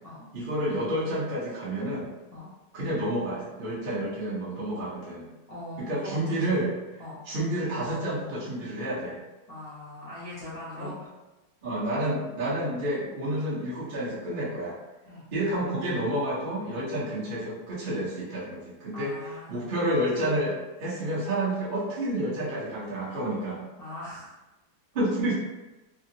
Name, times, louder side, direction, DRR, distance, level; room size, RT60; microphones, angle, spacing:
voice 1, 0.3-2.1 2.7-5.3 5.8-7.0 7.3-9.2 10.8-10.9 11.6-14.8 15.3-19.1 19.5-23.6 24.9-25.3, right 1 dB, 45° right, -8 dB, 0.7 m, -29 dB
voice 2, 5.5-6.6 7.0-7.2 9.5-11.0 15.0-15.3 18.9-19.7 23.8-24.4, left 1 dB, 50° left, -10 dB, 0.4 m, -41 dB
3.4 x 2.0 x 2.7 m, 1.1 s
omnidirectional pair, 1.8 m